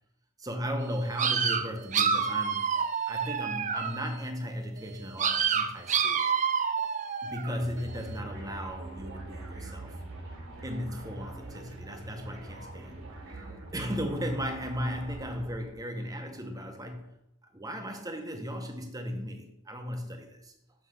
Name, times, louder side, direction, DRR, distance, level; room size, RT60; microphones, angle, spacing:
voice 1, 0.4-2.7 3.1-6.2 7.2-10.0 10.6-13.0 13.7-17.1 17.5-20.5, equal, 15° right, 1.0 m, -36 dB
sound 1, 1.2-4.1 5.2-7.6, right 6 dB, 35° right, 0.5 m, -28 dB
sound 2, 7.5-15.8, right 2 dB, 60° right, 1.9 m, -43 dB
6.3 x 5.9 x 6.5 m
head